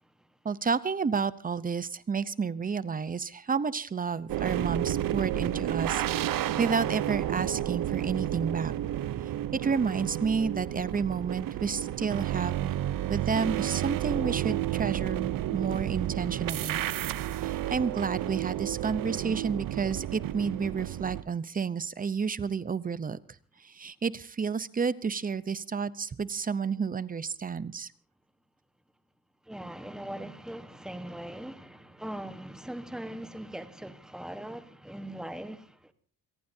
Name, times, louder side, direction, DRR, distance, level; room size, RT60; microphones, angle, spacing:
voice 1, 0.4-6.0 6.6-8.7 9.5-12.7 13.1-16.8 17.4-23.2 23.6-27.9, right 5 dB, 25° right, 0.7 m, -30 dB
sound 1, 4.3-21.2, right 12 dB, 65° right, 0.7 m, -31 dB
voice 2, 29.5-35.9, right 1 dB, ahead, 1.2 m, -40 dB
27.0 x 18.5 x 2.7 m
wide cardioid pair, 160°, 36 cm